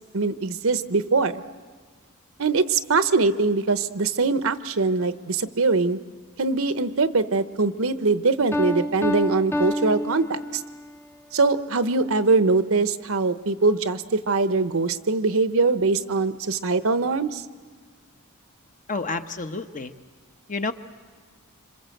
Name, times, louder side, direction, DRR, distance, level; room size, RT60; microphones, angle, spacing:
voice 1, 0.1-1.4 2.4-6.0 6.4-10.6 11.3-17.4, right 3 dB, 65° right, 12 dB, 0.9 m, -22 dB
Piano, 8.5-11.0, left 1 dB, 10° left, 0.7 m, -28 dB
voice 2, 18.9-19.9 20.5-20.7, left 3 dB, 35° left, 8 dB, 1.0 m, -29 dB
27.0 x 26.5 x 7.8 m, 1.5 s
head